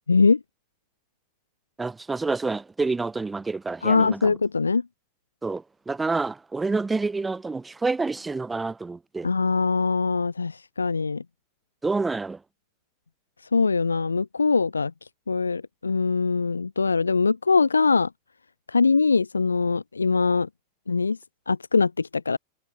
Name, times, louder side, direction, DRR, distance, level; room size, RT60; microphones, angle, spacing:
voice 1, 0.1-0.4 3.8-4.9 9.2-11.2 13.5-14.9 15.3-18.1 18.7-20.5 20.9-21.2 21.5-22.4, left 4 dB, 75° left, 5.4 m, -22 dB
voice 2, 1.8-4.3 5.4-9.3 11.8-12.4, right 3 dB, 10° right, 5.3 m, -28 dB
figure-of-eight pair, 90°, 0 cm